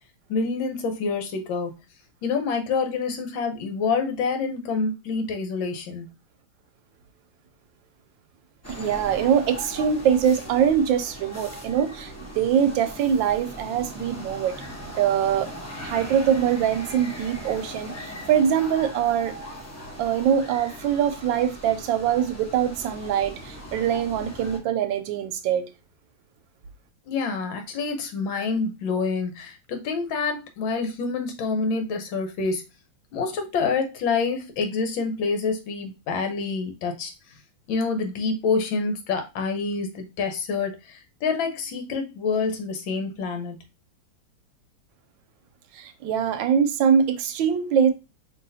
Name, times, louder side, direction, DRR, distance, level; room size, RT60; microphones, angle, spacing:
voice 1, 0.3-1.7 2.2-6.1 27.1-32.6 33.1-37.1 37.7-43.6, left 4 dB, 80° left, 1.7 m, -27 dB
sound 1, 8.6-24.6, equal, 20° left, 0.4 m, -39 dB
voice 2, 8.7-14.6 15.0-15.5 15.8-19.3 20.0-25.6 45.7-47.9, right 8 dB, 80° right, 1.3 m, -23 dB
5.4 x 2.8 x 2.7 m
omnidirectional pair, 2.1 m